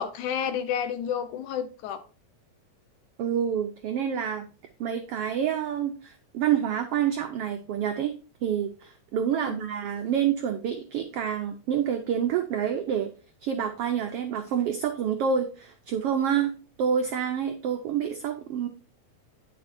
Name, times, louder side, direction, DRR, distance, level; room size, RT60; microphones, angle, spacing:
voice 1, 0.0-2.0 9.3-9.6, left 8 dB, 80° left, 2.3 m, -30 dB
voice 2, 3.2-4.5 4.8-8.1 8.4-13.1 13.4-16.5 16.8-18.7, right 8 dB, 85° right, 1.3 m, -27 dB
9.6 x 6.8 x 2.6 m
omnidirectional pair, 3.5 m